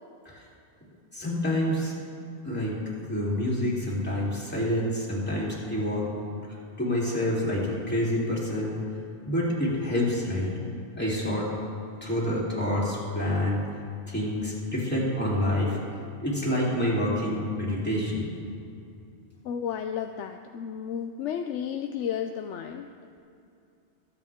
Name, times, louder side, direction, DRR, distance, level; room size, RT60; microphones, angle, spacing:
voice 1, 1.1-1.9 2.4-2.8 3.1-6.1 6.5-8.8 9.2-10.5 11.0-11.5 12.0-13.6 14.1-15.8 16.2-18.3, left 1 dB, 10° left, -7 dB, 3.3 m, -27 dB
voice 2, 19.4-22.9, left 8 dB, 85° left, 6 dB, 0.9 m, -32 dB
23.0 x 8.4 x 3.6 m, 2.6 s
omnidirectional pair, 1.2 m